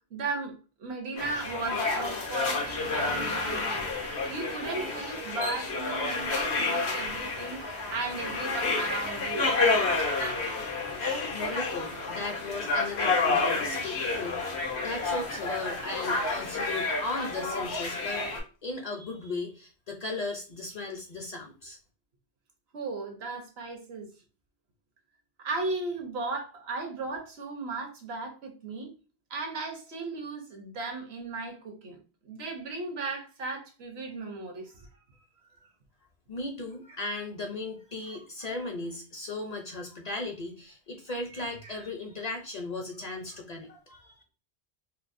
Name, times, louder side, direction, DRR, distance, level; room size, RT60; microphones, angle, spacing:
voice 1, 0.1-0.5 0.8-9.5 22.7-24.1 25.4-28.9 29.3-32.0 32.2-34.9 41.6-41.8, right 3 dB, 75° right, 1.1 m, -36 dB
sound 1, 1.2-18.4, left 3 dB, 85° left, 1.2 m, -30 dB
voice 2, 11.3-18.3 18.6-21.8 36.3-44.2, left 2 dB, 50° left, 0.6 m, -37 dB
4.4 x 2.0 x 2.5 m
omnidirectional pair, 1.1 m